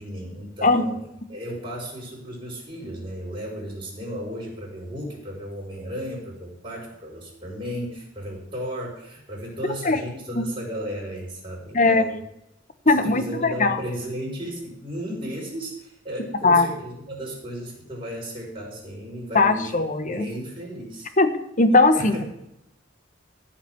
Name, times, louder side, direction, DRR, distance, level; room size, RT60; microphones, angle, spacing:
voice 1, 0.0-12.2 12.8-19.7 20.1-21.1 21.9-22.3, equal, 30° right, -3 dB, 4.7 m, -34 dB
voice 2, 11.7-12.0 12.8-13.8 16.4-16.7 19.3-20.2 21.2-21.3 21.6-22.1, left 3 dB, 40° left, 9 dB, 1.3 m, -19 dB
15.0 x 5.9 x 9.9 m, 0.81 s
head